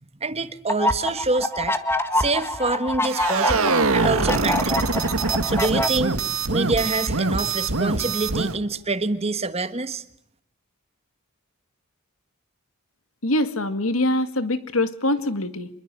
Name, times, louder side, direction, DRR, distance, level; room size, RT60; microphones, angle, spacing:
voice 1, 0.2-1.8 2.1-4.9 5.4-6.2 6.5-10.0, right 3 dB, 30° right, 1.5 m, -26 dB
sound 1, 0.7-5.9, left 1 dB, 10° left, 1.6 m, -26 dB
sound 2, 3.1-8.6, right 3 dB, 90° right, 2.0 m, -24 dB
voice 2, 13.2-15.7, left 1 dB, 80° left, 2.1 m, -23 dB
26.5 x 22.5 x 9.1 m
head